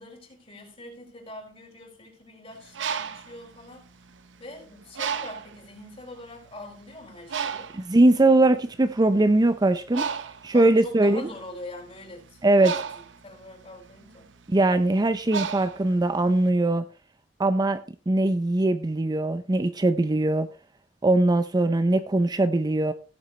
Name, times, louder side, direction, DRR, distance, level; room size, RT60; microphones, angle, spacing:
voice 1, 0.0-3.9 4.4-7.7 10.5-14.3, left 1 dB, 35° left, 4.5 m, -43 dB
Bird, 2.6-4.4 5.0-5.6 6.3-6.5 6.7-16.4, right 7 dB, 85° right, 0.7 m, -34 dB
voice 2, 7.8-10.0 10.4-11.2 12.4-12.7 14.5-16.8 17.4-17.8 18.1-20.5 21.0-22.9, right 2 dB, 20° right, 0.5 m, -21 dB
17.0 x 7.1 x 3.2 m
head